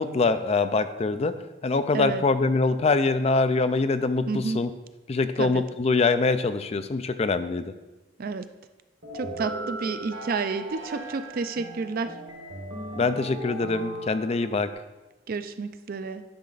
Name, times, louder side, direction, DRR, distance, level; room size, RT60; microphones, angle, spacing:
voice 1, 0.0-4.7 5.1-7.7 13.0-14.7, left 3 dB, 35° left, 11 dB, 0.4 m, -24 dB
voice 2, 4.3-4.6 5.4-5.6 8.2-8.5 9.1-12.1 15.3-16.2, right 4 dB, 50° right, 11 dB, 0.4 m, -30 dB
sound 1, 9.0-14.7, right 1 dB, 85° right, 1.5 m, -37 dB
10.5 x 5.6 x 4.0 m, 1.1 s
head